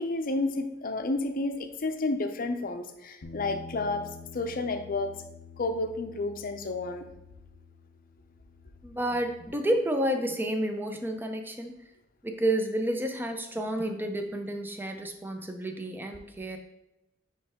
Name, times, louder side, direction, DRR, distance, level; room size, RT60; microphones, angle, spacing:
voice 1, 0.0-5.1 5.6-7.1, left 2 dB, 50° left, 7 dB, 0.6 m, -31 dB
Bass guitar, 3.2-9.5, left 4 dB, 85° left, 0.6 m, -48 dB
voice 2, 8.8-11.8 12.2-16.6, right 1 dB, 10° right, 4 dB, 0.6 m, -30 dB
9.6 x 3.2 x 3.6 m, 0.91 s
head